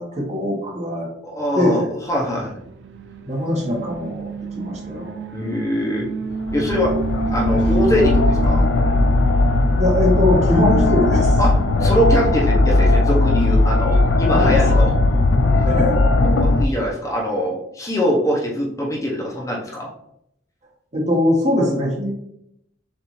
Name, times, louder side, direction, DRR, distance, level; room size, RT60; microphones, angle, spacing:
voice 1, 0.0-1.1 1.6-1.9 3.3-5.2 9.8-11.4 14.3-15.0 15.6-16.0 20.9-22.1, left 1 dB, 35° right, -1 dB, 1.2 m, -21 dB
voice 2, 1.2-1.8 2.1-2.5 5.3-6.1 6.5-7.0 7.3-8.7 11.4-14.9 16.4-19.9, equal, 15° left, -3 dB, 0.7 m, -23 dB
Alarm, 2.1-15.5, right 4 dB, 65° right, 0.4 m, -30 dB
sound 1, 6.3-16.7, left 2 dB, 70° left, 0.4 m, -17 dB
6.6 x 2.6 x 3.0 m, 0.77 s
head